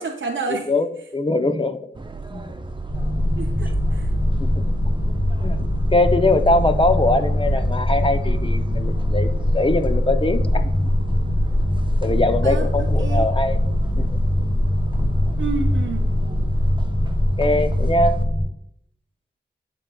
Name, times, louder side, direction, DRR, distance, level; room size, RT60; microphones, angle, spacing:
voice 1, 0.0-0.7 3.4-4.1 12.4-12.6 13.0-13.3 15.4-16.1, right 4 dB, 80° right, 1 dB, 0.5 m, -29 dB
voice 2, 0.7-1.8 2.3-2.5 4.4-4.5 5.4-5.6 5.9-10.9 12.0-13.6 14.0-14.1 17.4-18.2, left 2 dB, 25° left, 8 dB, 0.6 m, -22 dB
sound 1, 1.9-18.3, right 2 dB, 25° right, 0.5 m, -37 dB
sound 2, 2.9-18.4, left 1 dB, 70° left, 2.6 m, -21 dB
11.0 x 3.9 x 2.3 m, 0.69 s
wide cardioid pair, 55°, 20 cm